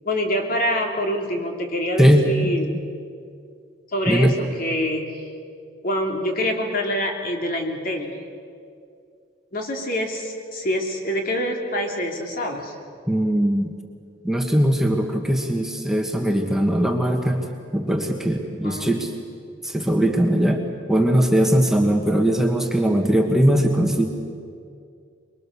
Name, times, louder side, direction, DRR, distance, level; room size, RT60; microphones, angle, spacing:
voice 1, 0.0-2.7 3.9-5.1 5.8-8.1 9.5-12.7 18.6-19.0, equal, 50° left, 2 dB, 2.8 m, -25 dB
voice 2, 2.0-2.3 4.1-4.4 13.1-13.7 14.2-17.5 17.7-19.1 19.6-24.1, equal, 5° right, 2 dB, 1.5 m, -20 dB
24.0 x 22.5 x 6.9 m, 2.3 s
head